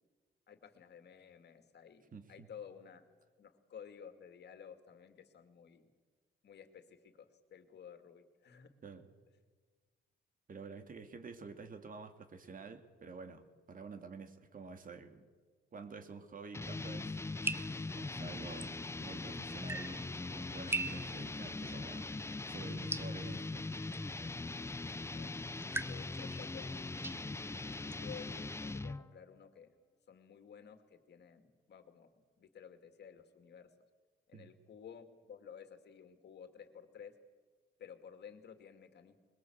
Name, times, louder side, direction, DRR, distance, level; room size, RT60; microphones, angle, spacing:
voice 1, 0.5-3.1 3.4-5.9 6.4-8.7 25.1-25.3 25.8-27.3 27.6-29.7 30.1-33.7 34.3-37.1 37.8-39.2, left 7 dB, 60° left, 8 dB, 2.4 m, -54 dB
voice 2, 2.1-2.5 8.8-9.1 10.5-15.3 15.7-17.2 17.9-22.1 22.5-23.7 34.3-34.5, right 4 dB, 45° right, 8 dB, 2.5 m, -50 dB
sound 1, 16.5-29.1, left 3 dB, 15° left, 0.6 m, -41 dB
sound 2, 17.1-28.7, right 2 dB, 10° right, 1.0 m, -45 dB
21.5 x 21.0 x 8.0 m, 1.4 s
cardioid pair, 90°, 20 cm